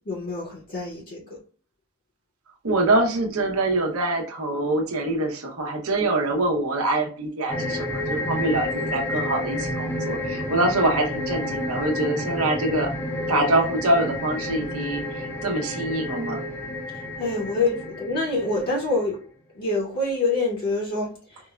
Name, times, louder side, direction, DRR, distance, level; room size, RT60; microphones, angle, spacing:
voice 1, 0.1-1.4 17.2-19.2 19.5-21.1, left 2 dB, 40° left, 0.8 m, -26 dB
voice 2, 2.6-12.9 13.3-16.4, right 2 dB, 65° right, 0.9 m, -24 dB
sound 1, 7.5-19.0, left 1 dB, 10° left, 0.5 m, -30 dB
4.7 x 2.2 x 2.4 m
head